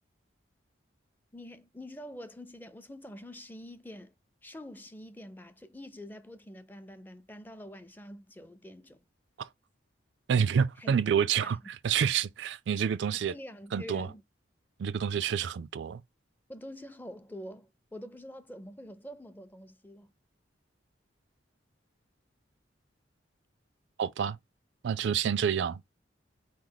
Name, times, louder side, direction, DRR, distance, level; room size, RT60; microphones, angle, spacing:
voice 1, 1.3-4.1 4.4-9.0 10.8-10.9 11.4-11.6 13.1-14.2 16.5-20.1, equal, 10° left, 0.5 m, -46 dB
voice 2, 10.3-13.3 13.7-14.1 14.8-16.0 24.0-24.4 24.8-25.8, right 7 dB, 70° right, 0.3 m, -28 dB
4.3 x 3.2 x 3.9 m
head